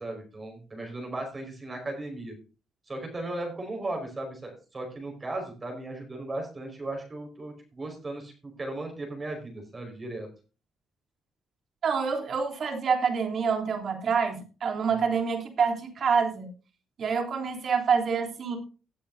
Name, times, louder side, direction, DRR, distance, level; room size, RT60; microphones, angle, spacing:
voice 1, 0.0-2.3 2.9-8.3 8.6-10.3 14.9-15.0, right 2 dB, 30° right, 2 dB, 5.0 m, -36 dB
voice 2, 11.8-16.5 17.0-18.6, right 6 dB, 55° right, 3 dB, 3.3 m, -27 dB
17.5 x 8.7 x 2.7 m, 0.34 s
cardioid pair, 90°, 0 cm